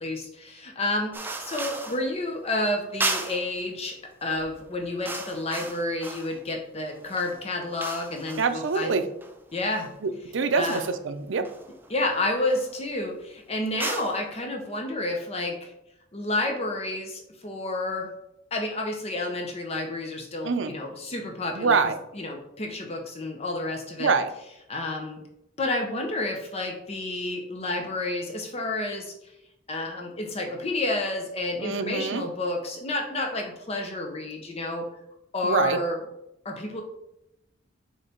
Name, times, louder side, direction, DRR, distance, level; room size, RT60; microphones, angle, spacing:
voice 1, 0.0-9.0 9.5-9.9 10.5-10.8 11.9-15.7 16.1-18.1 18.5-21.8 22.1-24.1 24.7-25.2 25.6-29.1 29.7-34.9 35.3-36.0 36.4-36.8, left 2 dB, 35° left, 2 dB, 0.8 m, -30 dB
sound 1, 1.1-2.1 3.0-3.5 4.3-4.5 4.8-6.5 6.9-9.9 10.6-11.0 11.4-12.0 12.5-12.8 13.7-14.2, right 3 dB, 10° right, 0.5 m, -35 dB
voice 2, 8.4-9.1 10.0-11.5 20.4-20.7 21.6-22.0 24.0-24.3 31.6-32.3 35.4-35.8, right 4 dB, 80° right, 10 dB, 0.6 m, -25 dB
6.7 x 3.3 x 4.3 m, 0.84 s
head